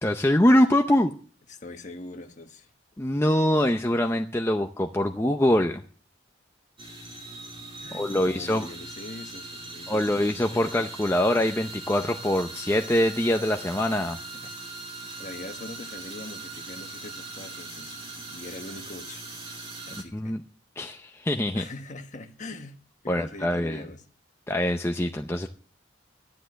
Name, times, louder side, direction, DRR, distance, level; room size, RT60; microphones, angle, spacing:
voice 1, 0.0-1.1 3.0-5.8 7.9-8.7 9.9-14.2 20.1-20.4 20.8-21.6 23.1-23.8 24.5-25.5, left 1 dB, 15° left, 0.6 m, -24 dB
voice 2, 1.5-2.7 7.8-10.2 10.5-10.7 14.4-14.5 15.2-18.0 18.3-19.2 19.9-20.4 21.5-22.8 23.0-24.0 25.4-25.5, left 2 dB, 40° left, 1.3 m, -42 dB
sound 1, 6.8-20.0, right 2 dB, 30° right, 2.5 m, -40 dB
12.5 x 10.5 x 6.3 m
head